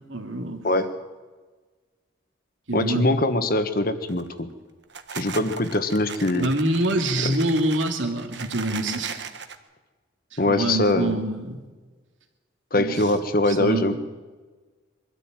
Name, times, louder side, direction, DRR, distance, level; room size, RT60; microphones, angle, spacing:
voice 1, 0.1-0.6 2.7-3.1 6.4-9.2 10.3-11.6 12.7-13.0 13.5-14.0, right 1 dB, 80° right, 4 dB, 2.7 m, -25 dB
voice 2, 2.7-4.5 5.1-6.5 7.2-7.3 10.4-11.2 12.7-13.9, left 1 dB, 50° left, 9 dB, 1.4 m, -23 dB
sound 1, 4.0-4.4 4.8-9.6, right 6 dB, 60° right, 1.3 m, -38 dB
23.0 x 13.5 x 9.1 m, 1.3 s
head